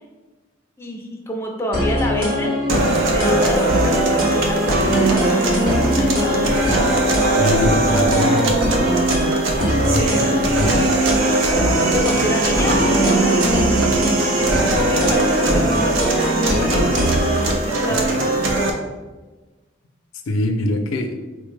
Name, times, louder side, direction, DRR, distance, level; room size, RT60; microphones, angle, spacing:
voice 1, 0.8-2.6 3.0-6.8 7.5-7.6 7.9-8.1 9.2-11.1 11.8-18.4, left 1 dB, 10° left, 0 dB, 0.4 m, -29 dB
sound 1, 1.7-17.5, equal, 45° right, 0.9 m, -22 dB
sound 2, 2.7-18.7, right 2 dB, 70° right, 0.5 m, -20 dB
voice 2, 7.4-8.5 9.6-10.7 20.3-21.1, left 1 dB, 80° left, 5 dB, 0.4 m, -23 dB
4.4 x 2.1 x 3.2 m, 1.2 s
head